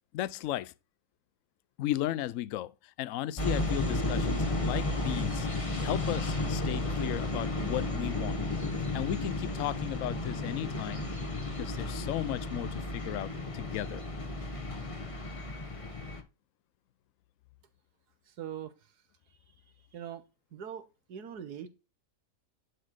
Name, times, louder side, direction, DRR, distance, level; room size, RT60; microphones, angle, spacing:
voice 1, 0.1-0.7 1.8-5.5 5.8-8.4 8.9-11.0 11.6-14.0, left 13 dB, 70° left, 0.9 m, -35 dB
sound 1, 3.4-16.2, left 2 dB, 25° left, 1.2 m, -33 dB
voice 2, 18.3-18.7 19.9-20.2 20.5-21.7, right 9 dB, 80° right, 1.6 m, -41 dB
11.0 x 4.0 x 4.8 m
omnidirectional pair, 1.7 m